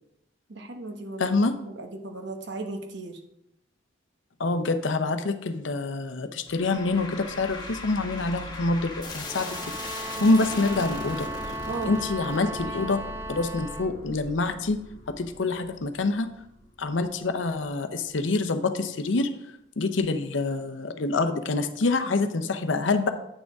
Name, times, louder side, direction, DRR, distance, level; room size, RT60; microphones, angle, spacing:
voice 1, 0.5-1.4 1.6-3.2 10.2-10.3 10.7-10.9 11.7-11.9, right 3 dB, 65° right, 4 dB, 1.1 m, -36 dB
voice 2, 1.2-1.6 4.4-9.6 10.2-11.3 11.8-13.0 13.3-14.8 15.1-16.3 16.8-19.3 19.8-23.1, left 3 dB, 80° left, 8 dB, 0.7 m, -26 dB
sound 1, 6.5-17.7, left 2 dB, 25° left, 1.3 m, -40 dB
sound 2, 9.2-14.0, right 1 dB, 15° right, 0.5 m, -36 dB
9.0 x 6.4 x 3.5 m, 0.84 s
head